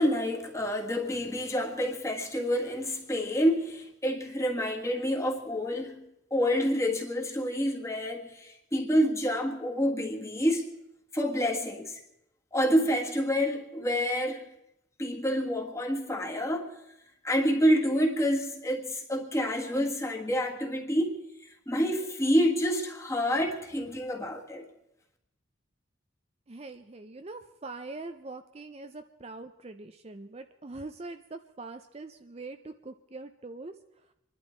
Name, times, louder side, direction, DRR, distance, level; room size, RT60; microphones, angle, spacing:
voice 1, 0.0-10.7 11.1-12.0 12.5-14.5 15.0-16.7 17.2-24.7, equal, 15° left, 1.7 m, -28 dB
voice 2, 26.5-33.8, right 3 dB, 30° right, 0.5 m, -43 dB
26.5 x 11.5 x 4.4 m
head